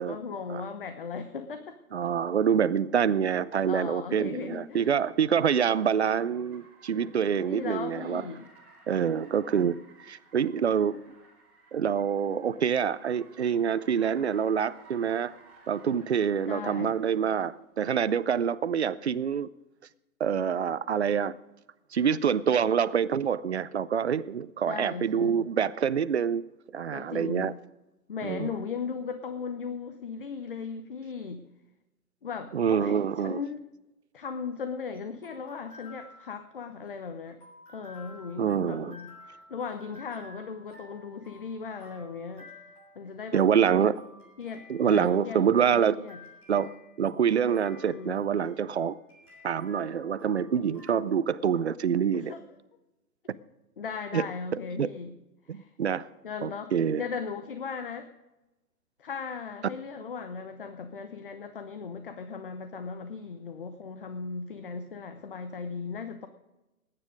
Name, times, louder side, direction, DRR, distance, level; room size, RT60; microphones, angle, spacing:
voice 1, 0.0-1.8 3.7-4.9 7.5-8.5 16.5-17.0 24.7-25.5 26.9-27.5 28.1-31.4 32.2-33.6 34.1-37.4 37.7-42.5 43.0-43.4 44.4-45.4 45.7-46.2 47.8-48.2 52.1-52.4 53.8-55.1 55.5-55.7 56.2-56.7 57.0-58.1 59.0-66.3, left 5 dB, 35° left, 0.7 m, -37 dB
voice 2, 1.9-8.2 8.9-11.0 11.7-15.4 15.7-19.5 20.2-21.3 21.9-26.4 26.7-27.5 28.2-28.5 32.5-33.4 38.4-39.0 43.3-43.9 44.7-46.0 46.5-46.7 47.0-49.0 49.4-52.3 54.1-54.3 54.8-54.9 55.5-56.1 56.4-57.0, right 7 dB, 50° right, 0.5 m, -26 dB
Car, 3.6-17.5, right 3 dB, 5° right, 1.0 m, -57 dB
sound 1, 34.3-50.9, left 2 dB, 10° left, 3.7 m, -53 dB
18.5 x 9.8 x 5.1 m
hypercardioid pair, 175°, 45 cm